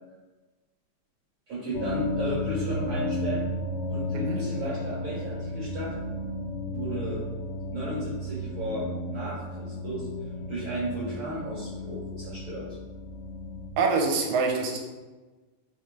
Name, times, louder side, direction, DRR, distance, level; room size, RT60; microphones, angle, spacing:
voice 1, 1.5-3.5 3.9-5.9 6.7-7.2 7.7-10.1 10.5-12.7, right 1 dB, 50° right, -9 dB, 1.8 m, -34 dB
sound 1, 1.7-13.7, left 1 dB, 80° left, 1.2 m, -33 dB
voice 2, 13.8-14.8, right 4 dB, 85° right, 2 dB, 2.0 m, -25 dB
4.3 x 3.1 x 2.3 m, 1.2 s
omnidirectional pair, 3.3 m